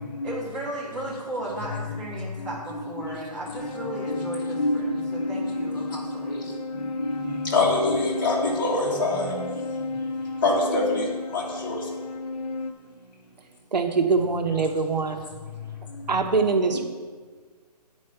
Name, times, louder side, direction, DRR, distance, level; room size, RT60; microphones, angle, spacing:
voice 1, 0.2-6.5, right 1 dB, 15° right, -8 dB, 1.7 m, -35 dB
sound 1, 3.6-12.7, left 3 dB, 65° left, 0.9 m, -32 dB
voice 2, 7.5-9.3 10.4-11.0 11.3-11.8, left 2 dB, 30° left, -4 dB, 2.0 m, -24 dB
voice 3, 13.7-15.2 16.1-16.8, right 4 dB, 90° right, 5 dB, 1.0 m, -23 dB
9.0 x 5.3 x 6.8 m, 1.5 s
hypercardioid pair, 175°, 21 cm